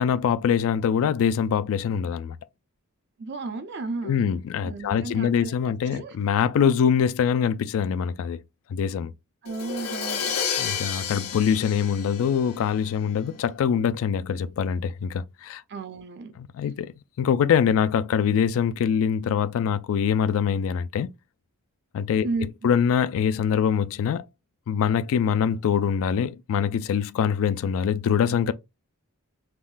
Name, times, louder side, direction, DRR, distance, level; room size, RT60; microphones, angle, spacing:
voice 1, 0.0-2.4 4.0-8.4 8.7-9.1 10.6-15.6 16.5-16.9 17.2-21.1 21.9-22.3 22.6-24.2 24.7-28.5, left 7 dB, 65° left, 0.3 m, -24 dB
voice 2, 3.2-4.2 4.6-6.1 9.4-10.4 15.7-16.3 22.2-22.5, right 3 dB, 50° right, 0.5 m, -33 dB
Crash cymbal, 9.5-13.2, left 7 dB, 80° left, 0.7 m, -31 dB
3.5 x 2.2 x 2.4 m
head